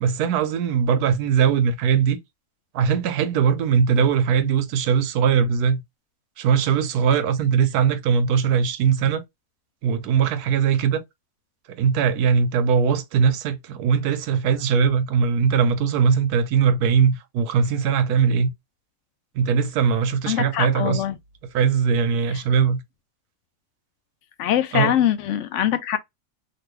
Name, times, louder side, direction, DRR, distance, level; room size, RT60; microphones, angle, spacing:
voice 1, 0.0-2.2 2.7-5.8 6.4-9.2 9.8-11.0 11.7-18.5 19.3-21.0 21.5-22.8 24.7-24.9, right 6 dB, 85° right, 1.2 m, -20 dB
voice 2, 20.3-21.2 22.3-22.4 24.4-26.0, left 11 dB, 70° left, 0.7 m, -23 dB
3.0 x 2.6 x 3.1 m
omnidirectional pair, 1.6 m